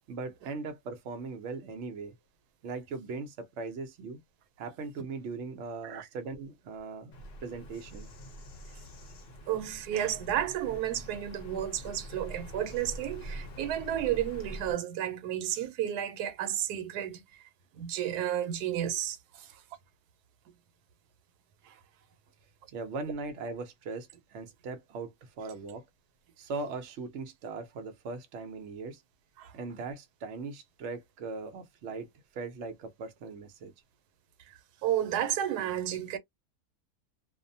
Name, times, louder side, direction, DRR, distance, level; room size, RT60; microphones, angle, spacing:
voice 1, 0.1-2.1 2.6-4.2 4.6-7.1 7.4-8.1 22.7-25.8 26.4-29.0 29.5-33.7, right 4 dB, 60° right, 0.9 m, -39 dB
Bird vocalization bird call bird song, 7.1-14.7, equal, 50° left, 0.8 m, -45 dB
voice 2, 9.5-17.5 17.8-19.5 21.6-21.8 29.4-29.5 34.5-36.2, right 11 dB, 85° right, 1.1 m, -32 dB
2.6 x 2.1 x 2.6 m
omnidirectional pair, 1.6 m